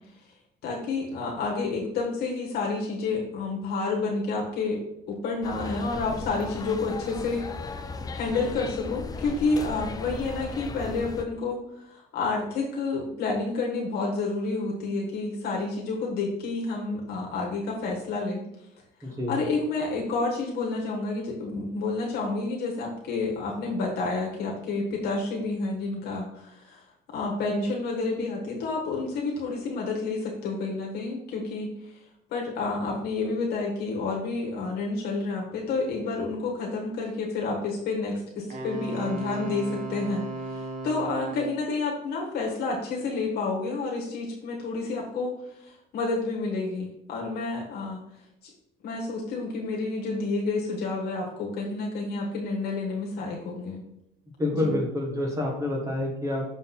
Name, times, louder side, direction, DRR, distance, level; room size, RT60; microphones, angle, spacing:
voice 1, 0.6-7.4 8.1-18.4 19.3-26.8 27.1-31.7 32.3-48.0 48.8-53.8 54.6-54.7, left 3 dB, 75° left, -2 dB, 1.4 m, -29 dB
sound 1, 5.4-11.2, left 3 dB, 20° left, 0.5 m, -36 dB
voice 2, 19.0-19.3 54.4-56.4, left 1 dB, 20° right, 0 dB, 1.5 m, -27 dB
Wind instrument woodwind instrument, 38.5-41.7, right 1 dB, 50° right, 1.5 m, -35 dB
6.4 x 4.0 x 4.1 m, 0.80 s
cardioid pair, 110°, 17 cm